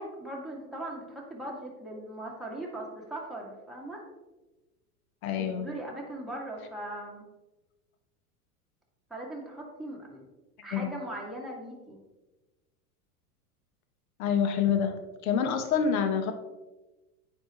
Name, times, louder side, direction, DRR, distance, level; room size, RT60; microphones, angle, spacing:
voice 1, 0.0-4.0 5.4-7.2 9.1-10.2 10.6-12.0, right 1 dB, ahead, -4 dB, 2.0 m, -39 dB
voice 2, 5.2-5.7 10.7-10.9 14.2-14.9 15.2-16.3, left 7 dB, 65° left, 8 dB, 1.1 m, -26 dB
9.5 x 4.5 x 3.0 m, 1.1 s
hypercardioid pair, 95°, 46 cm